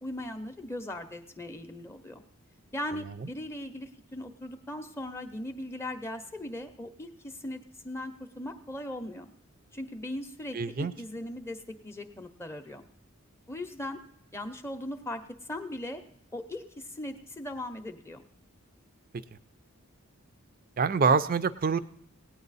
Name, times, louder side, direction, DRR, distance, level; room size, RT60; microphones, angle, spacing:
voice 1, 0.0-2.2 2.7-9.3 9.7-12.8 13.5-14.0 14.3-16.0 16.3-18.2, left 1 dB, 10° left, 6 dB, 0.6 m, -39 dB
voice 2, 10.5-10.9 19.3-19.4 20.8-21.8, right 5 dB, 40° right, 14 dB, 0.5 m, -25 dB
18.0 x 9.2 x 4.1 m, 0.66 s
head